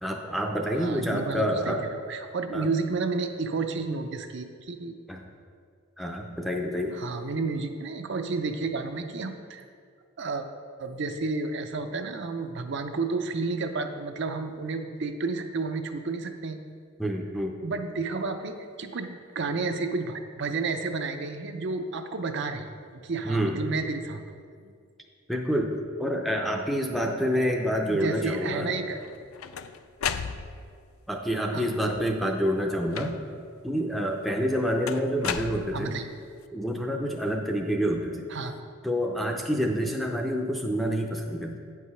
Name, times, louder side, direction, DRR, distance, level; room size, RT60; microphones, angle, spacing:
voice 1, 0.0-1.9 2.5-2.7 5.1-5.2 6.0-7.0 17.0-17.6 23.2-23.6 25.3-28.7 31.1-33.2 33.6-36.0 36.5-38.3 38.8-41.6, equal, ahead, 1 dB, 0.5 m, -28 dB
voice 2, 0.8-5.0 6.9-9.6 10.2-10.5 10.8-16.6 17.6-22.7 22.9-24.4 24.6-24.7 27.9-29.0 31.5-31.7 35.7-36.1 38.3-38.6, right 3 dB, 55° right, 6 dB, 0.5 m, -31 dB
sound 1, 29.0-30.8 31.7-32.2 32.9-33.5 34.9-36.1, left 7 dB, 80° left, 0.4 m, -35 dB
8.9 x 4.8 x 5.6 m, 2.2 s
head